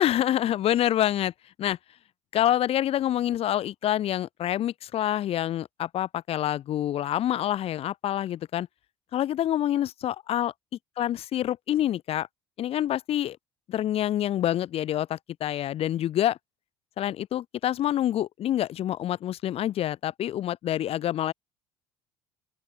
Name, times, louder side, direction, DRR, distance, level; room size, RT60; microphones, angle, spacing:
voice 1, 0.0-1.3 1.6-1.8 2.3-8.7 9.1-10.5 11.0-12.3 12.6-13.4 13.7-16.4 17.0-21.3, left 12 dB, 50° left, 0.9 m, -27 dB
open air
hypercardioid pair, 70°, 13 cm